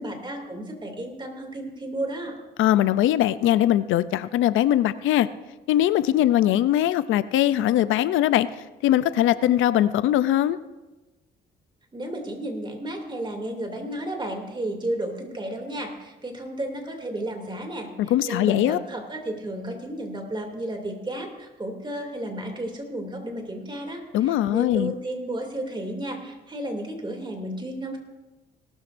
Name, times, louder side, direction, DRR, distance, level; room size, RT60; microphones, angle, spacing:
voice 1, 0.0-2.3 11.9-28.0, right 1 dB, 25° right, 2 dB, 2.7 m, -33 dB
voice 2, 2.6-5.3 5.7-8.5 8.8-10.6 18.0-18.8 24.1-24.9, left 12 dB, 85° left, 15 dB, 0.5 m, -21 dB
19.0 x 13.0 x 2.6 m, 1.1 s
cardioid pair, 90°, 20 cm